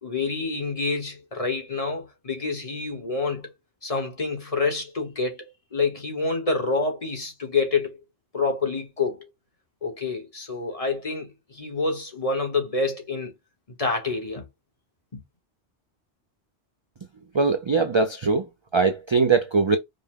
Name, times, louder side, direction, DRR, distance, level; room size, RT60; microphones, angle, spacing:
voice 1, 0.0-3.5 3.8-8.0 8.3-9.3 9.8-13.3 13.8-14.5, left 4 dB, 35° left, 1.1 m, -27 dB
voice 2, 17.3-19.8, right 4 dB, 45° right, 0.3 m, -21 dB
5.2 x 2.1 x 3.5 m
omnidirectional pair, 1.2 m